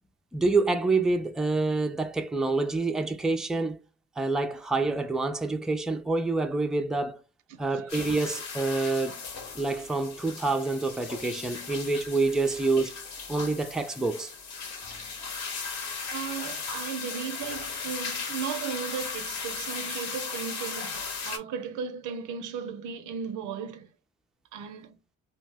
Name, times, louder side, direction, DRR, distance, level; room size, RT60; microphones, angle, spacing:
voice 1, 0.3-3.8 4.2-7.2 7.6-9.2 9.5-14.3, right 3 dB, ahead, 0.3 m, -27 dB
voice 2, 7.5-7.9 12.5-12.6 16.1-23.9 24.5-25.0, right 7 dB, 90° right, 0.5 m, -36 dB
sound 1, 7.9-21.4, left 5 dB, 65° left, 0.9 m, -37 dB
2.6 x 2.1 x 3.3 m
cardioid pair, 90°, 30 cm